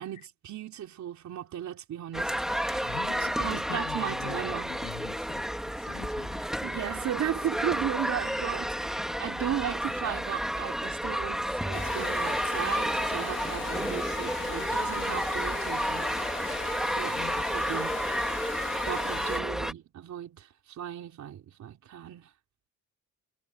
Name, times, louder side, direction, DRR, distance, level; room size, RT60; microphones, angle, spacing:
voice 1, 0.0-4.7 6.6-16.1 16.4-16.6 17.0-17.2 17.5-18.0 18.9-22.3, right 10 dB, 65° right, 3.6 m, -36 dB
sound 1, 2.1-19.7, equal, ahead, 1.8 m, -31 dB
voice 2, 2.9-6.6 17.1-17.4, left 12 dB, 85° left, 7.7 m, -43 dB
sound 2, 11.7-19.4, left 7 dB, 40° left, 1.7 m, -39 dB
cardioid pair, 145°, 30 cm